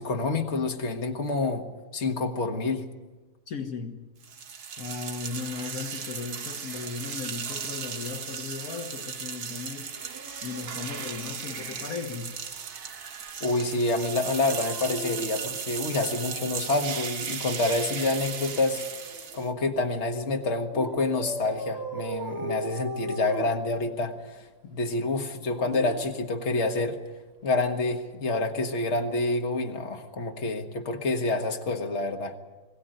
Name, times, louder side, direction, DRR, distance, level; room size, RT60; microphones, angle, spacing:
voice 1, 0.0-2.9 13.4-18.9 19.3-27.0 27.4-32.4, left 2 dB, 50° left, 1.8 m, -28 dB
voice 2, 3.5-4.0 4.8-12.4, left 5 dB, 70° left, 1.7 m, -37 dB
sound 1, 4.2-19.5, right 6 dB, 80° right, 1.7 m, -36 dB
Dog, 9.9-11.8 14.3-16.6 17.9-19.6 20.7-24.3 25.3-26.9 28.2-28.4, right 1 dB, 40° right, 3.1 m, -39 dB
21.5 x 17.0 x 9.1 m
omnidirectional pair, 1.6 m